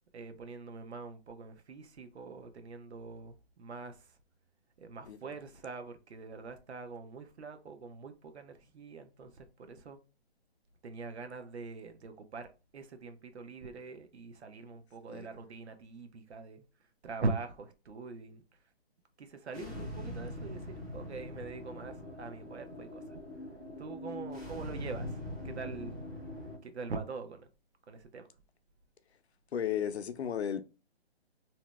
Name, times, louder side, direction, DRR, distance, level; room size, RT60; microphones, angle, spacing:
voice 1, 0.1-4.2 4.8-10.0 10.8-16.6 17.0-18.4 19.2-20.6 20.9-23.2 23.8-25.1 25.4-25.9 26.6-27.5 27.9-28.3, right 4 dB, 85° right, 0.8 m, -43 dB
sound 1, 19.5-26.6, left 1 dB, 10° right, 0.4 m, -42 dB
voice 2, 19.6-19.9 29.5-30.6, left 9 dB, 80° left, 0.6 m, -35 dB
2.8 x 2.0 x 3.3 m
hypercardioid pair, 155°, 32 cm